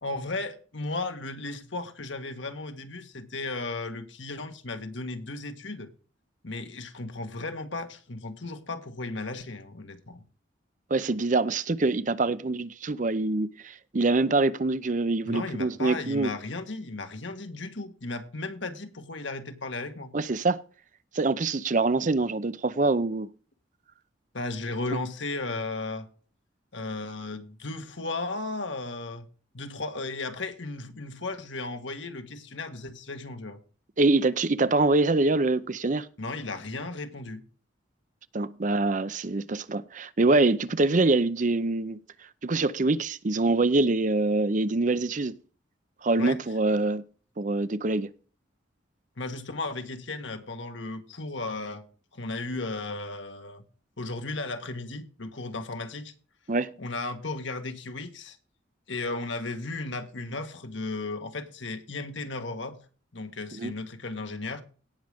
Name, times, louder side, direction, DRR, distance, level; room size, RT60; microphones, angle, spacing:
voice 1, 0.0-5.9 6.4-10.2 15.2-20.1 24.3-26.1 26.7-29.2 29.5-33.6 36.2-37.4 46.2-46.4 49.2-51.9 52.1-53.6 54.0-56.1 56.8-58.4 58.9-62.8 63.1-64.6, left 2 dB, 75° left, 1.6 m, -35 dB
voice 2, 10.9-16.3 20.1-20.6 21.1-23.3 34.0-36.1 38.3-42.0 42.4-45.4 46.0-47.0 47.4-48.1 56.5-56.7 63.6-63.7, right 2 dB, 40° right, 0.6 m, -25 dB
18.0 x 6.4 x 3.6 m
head